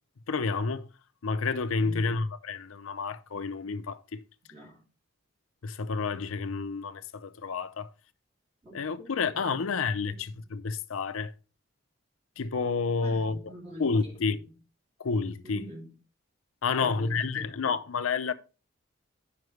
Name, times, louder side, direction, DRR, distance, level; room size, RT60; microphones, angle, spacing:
voice 1, 0.3-0.9 1.2-4.2 5.6-7.9 8.7-11.3 12.4-13.4 13.8-14.4 15.0-15.6 16.6-18.3, left 4 dB, 80° left, 0.6 m, -30 dB
voice 2, 1.8-2.1 4.5-4.9 8.6-9.4 10.0-10.5 13.0-14.5 15.4-16.0 16.7-17.5, equal, 25° right, 2.8 m, -46 dB
9.2 x 5.8 x 3.2 m
head